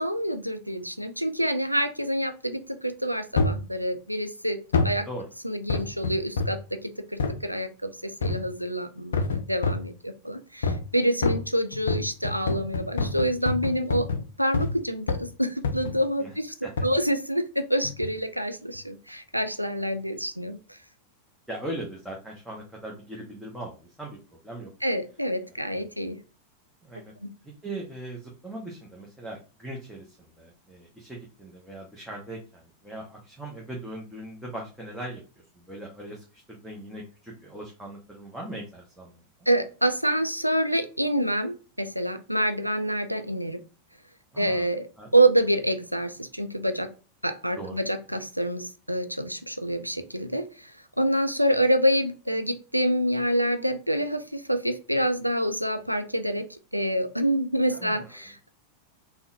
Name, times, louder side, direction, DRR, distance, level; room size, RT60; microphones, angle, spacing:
voice 1, 0.0-5.1 5.4-14.1 14.4-16.5 16.8-20.6 24.8-26.2 27.2-27.3 39.5-43.6 44.4-44.9 45.1-46.9 47.2-50.7 51.0-56.5 56.7-58.5, right 1 dB, 90° right, 8 dB, 0.3 m, -27 dB
sound 1, 3.4-3.7 4.7-5.0 5.7-6.7 7.2-7.4 8.2-8.6 9.1-9.9 10.6-10.9 11.2-14.8 15.1-15.3 15.6-16.0 16.8-17.0 17.8-18.2 18.7-18.8, left 3 dB, 65° left, 0.4 m, -28 dB
voice 2, 21.5-24.7 26.8-27.1 27.4-35.2 35.5-39.2 44.3-44.7 45.0-45.1 47.6-47.8 57.7-58.3, right 1 dB, 5° right, -3 dB, 0.7 m, -39 dB
3.7 x 2.1 x 2.4 m, 0.34 s
figure-of-eight pair, 90°, 0 cm